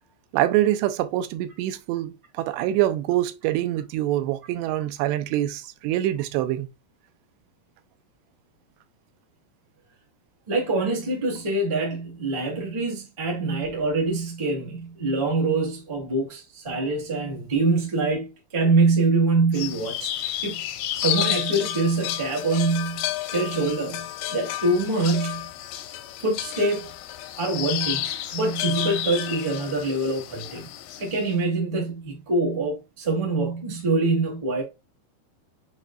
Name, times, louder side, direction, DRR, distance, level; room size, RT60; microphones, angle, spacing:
voice 1, 0.3-6.7, right 13 dB, 85° right, 2.7 m, -25 dB
voice 2, 10.5-20.6 20.9-23.1 23.3-24.0 24.3-25.5 26.2-26.9 27.4-30.7 31.0-34.6, right 3 dB, 20° right, 0.7 m, -25 dB
sound 1, 19.5-31.2, left 12 dB, 85° left, 2.8 m, -31 dB
7.0 x 3.2 x 2.4 m
omnidirectional pair, 4.9 m